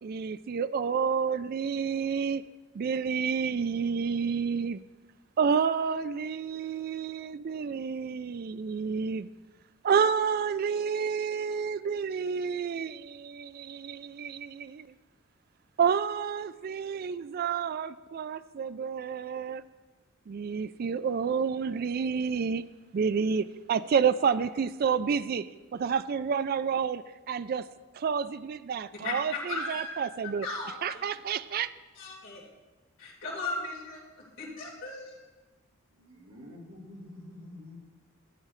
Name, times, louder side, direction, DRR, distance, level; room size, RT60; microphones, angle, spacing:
voice 1, 0.0-2.4 2.7-4.8 5.4-9.3 9.8-14.9 15.8-19.6 20.3-22.6 22.9-25.5 25.7-27.7 27.9-30.5 30.8-31.7, right 6 dB, 45° right, 15 dB, 0.3 m, -29 dB
voice 2, 28.9-31.1 32.0-32.5 33.0-35.2, left 3 dB, 60° left, -5 dB, 3.0 m, -37 dB
voice 3, 36.0-37.8, left 1 dB, 70° right, -1 dB, 2.1 m, -47 dB
13.5 x 8.8 x 3.2 m, 1.2 s
head